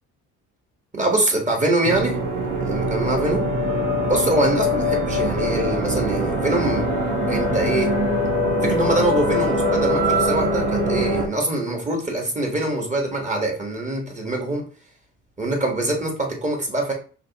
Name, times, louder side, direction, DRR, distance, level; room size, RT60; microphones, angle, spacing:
voice 1, 0.9-2.2 2.6-3.5 4.0-6.9 7.3-8.0 8.6-14.7 15.4-16.9, right 2 dB, 25° right, 1 dB, 1.5 m, -24 dB
sound 1, 1.8-11.3, equal, 80° right, 1.3 m, -22 dB
5.1 x 3.1 x 3.0 m, 0.40 s
cardioid pair, 90°, 30 cm